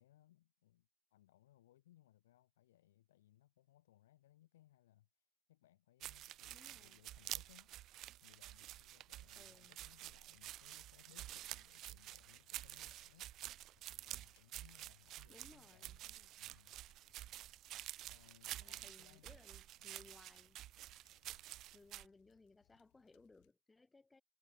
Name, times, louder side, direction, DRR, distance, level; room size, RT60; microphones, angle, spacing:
voice 1, 0.0-7.8 8.2-13.3 13.6-16.8 18.1-19.4 19.8-20.1, left 14 dB, 80° left, 3.0 m, -68 dB
sound 1, 6.0-22.1, right 14 dB, 45° right, 0.5 m, -50 dB
voice 2, 6.5-7.0 9.4-9.8 15.3-16.3 18.6-20.7 21.7-24.2, left 3 dB, 10° left, 7.1 m, -64 dB
sound 2, 10.3-23.5, left 27 dB, 55° left, 7.9 m, -77 dB
hypercardioid pair, 105°, 0 cm